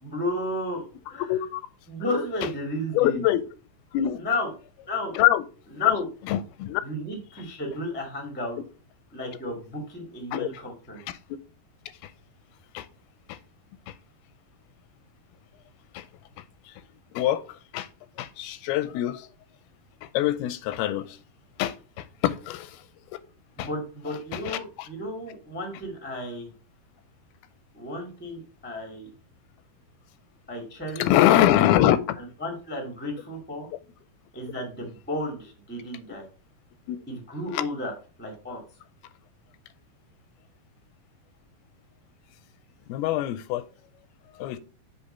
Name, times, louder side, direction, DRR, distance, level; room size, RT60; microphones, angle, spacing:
voice 1, 0.0-1.3 1.9-3.2 4.2-4.5 4.8-5.2 5.8-6.1 6.8-8.6 9.1-11.0 23.6-26.5 27.7-29.1 30.5-31.1 32.2-33.7 34.3-36.3 37.1-37.9 38.2-38.6, left 1 dB, 15° left, 0.3 m, -33 dB
voice 2, 1.2-1.6 2.9-3.4 3.9-4.2 5.2-5.4 5.8-6.8 7.4-7.5 10.3-10.5 12.0-12.1 12.7-12.9 13.3-13.4 13.9-14.0 15.9-16.1 16.7-16.8 17.1-17.9 18.2-19.3 20.0-21.2 21.6-22.8 23.6-23.7 24.3-24.9 31.0-32.2 36.9-37.0 37.5-37.6 42.9-43.7 44.4-44.6, left 13 dB, 85° left, 2.4 m, -24 dB
7.8 x 3.5 x 4.3 m
omnidirectional pair, 4.3 m